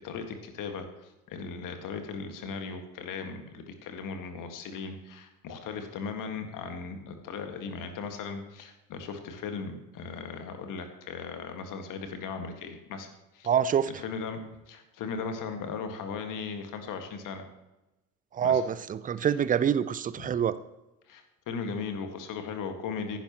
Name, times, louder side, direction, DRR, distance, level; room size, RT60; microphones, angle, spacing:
voice 1, 0.0-13.5 13.9-17.5 18.4-18.6 20.2-20.4 21.1-23.2, left 5 dB, 45° left, 6 dB, 1.8 m, -37 dB
voice 2, 13.5-13.9 18.3-20.6, right 8 dB, 20° right, 16 dB, 0.5 m, -26 dB
15.0 x 11.5 x 3.0 m, 1.0 s
figure-of-eight pair, 65°, 44 cm